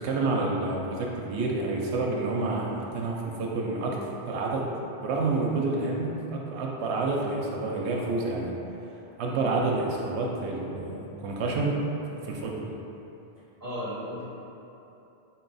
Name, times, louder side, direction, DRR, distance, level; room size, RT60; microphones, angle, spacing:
voice 1, 0.0-4.7 5.0-8.5 9.2-11.8 12.2-12.7, right 3 dB, 80° right, -1 dB, 0.8 m, -29 dB
voice 2, 13.6-14.2, equal, 20° left, -11 dB, 0.8 m, -35 dB
4.0 x 2.3 x 3.9 m, 2.9 s
omnidirectional pair, 1.1 m